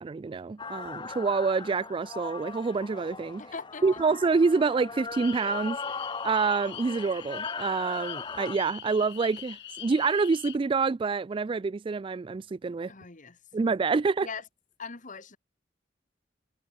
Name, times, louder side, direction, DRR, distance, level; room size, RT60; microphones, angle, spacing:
voice 1, 0.0-3.4 3.8-5.8 6.2-12.9 13.5-14.3, right 4 dB, 30° right, 0.3 m, -27 dB
sound 1, 0.6-8.6, left 4 dB, 25° left, 1.0 m, -39 dB
voice 2, 3.4-4.0 12.9-13.4 14.2-14.4 14.8-15.4, left 5 dB, 45° left, 1.9 m, -41 dB
sound 2, 5.1-10.6, left 13 dB, 65° left, 1.6 m, -43 dB
head